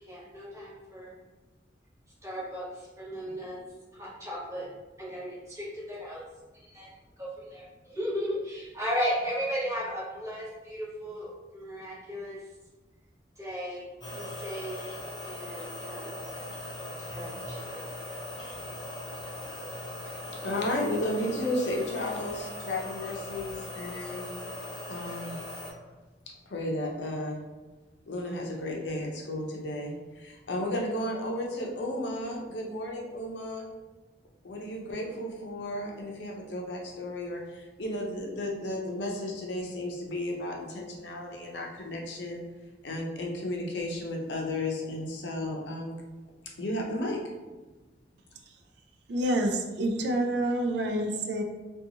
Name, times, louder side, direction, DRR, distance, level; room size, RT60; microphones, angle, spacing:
voice 1, 0.1-1.1 2.2-4.7 5.0-6.2 6.5-12.4 13.4-13.9 14.1-14.9 15.2-16.2 17.1-17.9, equal, 15° right, -9 dB, 1.0 m, -36 dB
sound 1, 14.0-25.7, left 1 dB, 25° left, 0.4 m, -39 dB
voice 2, 20.3-24.3 24.9-25.4 26.5-27.4 28.1-33.7 34.4-42.4 42.8-45.9 46.6-47.2, left 1 dB, 80° left, 0 dB, 0.5 m, -33 dB
voice 3, 49.1-51.4, right 1 dB, 70° right, 3 dB, 0.3 m, -28 dB
2.6 x 2.3 x 2.7 m, 1.2 s
head